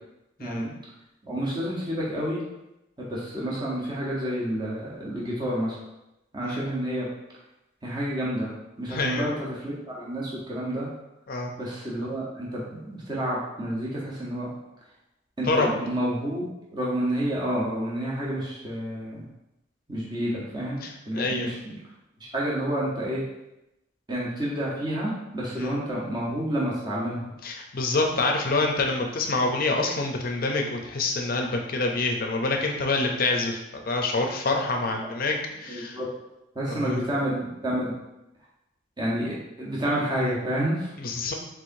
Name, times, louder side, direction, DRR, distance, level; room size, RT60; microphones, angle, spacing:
voice 1, 0.4-0.7 1.2-2.4 3.0-5.8 6.3-7.1 7.8-8.5 8.8-10.9 11.6-14.5 15.4-16.5 16.7-19.2 19.9-21.8 22.2-23.2 24.1-27.3 35.7-36.1 36.5-37.9 39.0-40.9, right 1 dB, 20° right, -6 dB, 0.9 m, -29 dB
voice 2, 8.9-9.2 11.3-11.5 15.4-15.7 20.8-21.5 25.6-25.7 27.4-36.0 36.7-37.0 41.0-41.3, left 3 dB, 45° left, 2 dB, 0.6 m, -26 dB
4.6 x 3.8 x 2.7 m, 0.91 s
head